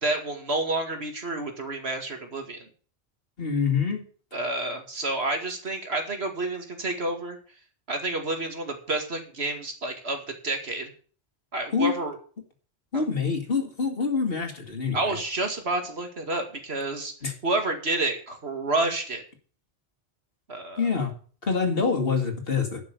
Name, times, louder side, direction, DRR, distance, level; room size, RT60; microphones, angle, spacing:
voice 1, 0.0-2.7 4.3-7.4 7.9-10.9 11.5-12.2 12.9-13.1 14.9-17.1 17.4-19.2 20.5-20.9, right 2 dB, 60° right, 4 dB, 2.5 m, -29 dB
voice 2, 3.4-4.0 11.7-11.9 12.9-15.2 17.2-17.3 20.8-21.1 21.4-22.8, left 5 dB, 55° left, 4 dB, 2.3 m, -26 dB
11.5 x 6.2 x 8.1 m, 0.41 s
omnidirectional pair, 1.2 m